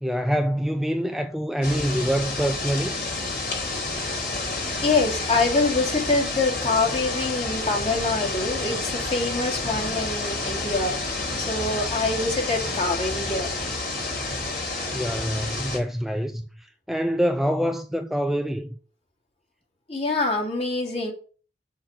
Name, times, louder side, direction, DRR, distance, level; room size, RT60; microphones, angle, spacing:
voice 1, 0.0-3.0 14.9-18.8, equal, ahead, 0.4 m, -26 dB
sound 1, 1.6-15.8, left 2 dB, 65° left, 4.2 m, -29 dB
voice 2, 4.8-13.6 19.9-21.1, left 3 dB, 35° left, 2.9 m, -25 dB
7.2 x 6.8 x 5.2 m
head